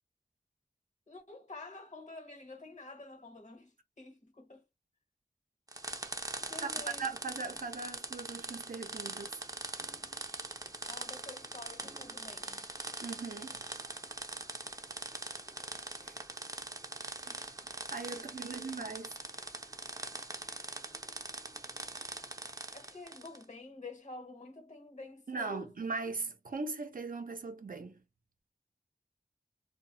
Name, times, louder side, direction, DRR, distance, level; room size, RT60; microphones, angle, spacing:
voice 1, 1.1-4.6 6.5-7.1 10.9-12.7 17.2-17.7 18.1-19.0 22.7-25.8, left 2 dB, 55° left, 1.1 m, -49 dB
sound 1, 5.7-23.4, right 2 dB, 25° right, 0.5 m, -42 dB
voice 2, 7.0-9.4 13.0-13.6 16.0-16.2 17.9-19.1 25.3-28.0, right 4 dB, 75° right, 0.6 m, -39 dB
2.1 x 2.0 x 3.8 m
wide cardioid pair, 40°, 14 cm